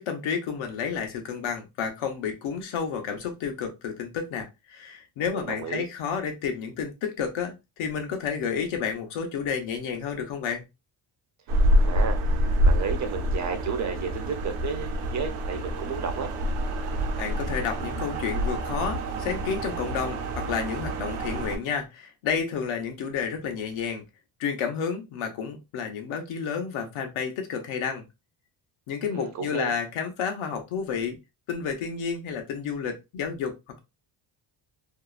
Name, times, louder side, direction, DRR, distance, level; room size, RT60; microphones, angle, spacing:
voice 1, 0.0-10.7 17.2-24.0 24.4-28.1 28.9-31.2 31.5-33.8, left 6 dB, 85° left, 0.9 m, -31 dB
voice 2, 5.3-5.9 11.8-16.3 29.1-29.8, right 5 dB, 40° right, 0.5 m, -32 dB
sound 1, 11.5-21.6, equal, 85° right, 0.7 m, -27 dB
2.8 x 2.0 x 2.3 m
cardioid pair, 135°, 48 cm